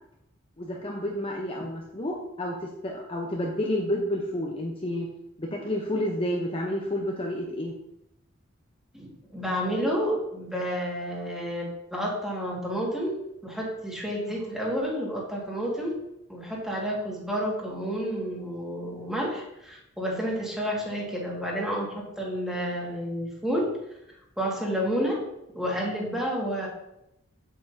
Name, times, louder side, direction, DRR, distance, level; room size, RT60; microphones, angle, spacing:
voice 1, 0.6-5.1 5.4-7.7, left 1 dB, 25° left, -1 dB, 0.8 m, -30 dB
voice 2, 8.9-13.2 13.4-16.0 16.3-23.8 24.4-25.2 25.5-26.7, equal, ahead, -3 dB, 1.9 m, -30 dB
8.0 x 7.7 x 2.7 m, 0.83 s
head